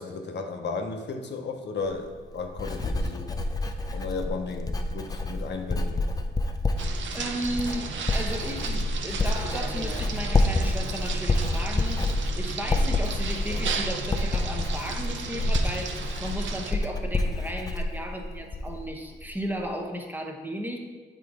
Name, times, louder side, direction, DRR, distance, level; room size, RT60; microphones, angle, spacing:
voice 1, 0.0-3.3 3.9-6.1, left 4 dB, 65° left, 4 dB, 0.7 m, -34 dB
Writing, 1.8-18.9 19.2-19.6, left 2 dB, 20° left, 0.5 m, -28 dB
sound 1, 6.8-16.7, right 5 dB, 75° right, 0.7 m, -35 dB
voice 2, 7.1-12.1 12.4-20.8, equal, 10° right, 2 dB, 0.8 m, -35 dB
7.6 x 3.8 x 4.8 m, 1.4 s
cardioid pair, 110°, 19 cm